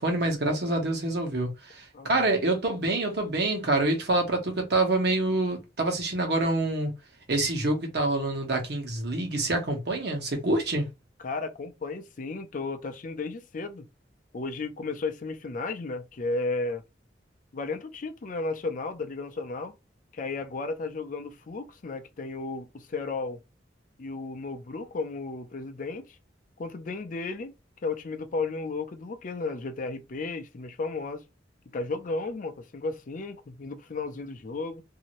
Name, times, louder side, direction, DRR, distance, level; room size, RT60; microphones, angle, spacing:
voice 1, 0.0-6.9 7.3-10.9, right 2 dB, 60° right, 1.1 m, -26 dB
voice 2, 1.9-2.3 11.2-13.9 14.3-16.8 17.5-19.7 20.1-23.4 24.0-26.2 26.6-27.5 27.8-31.2 31.7-34.8, left 3 dB, 45° left, 0.5 m, -34 dB
2.7 x 2.6 x 3.0 m
head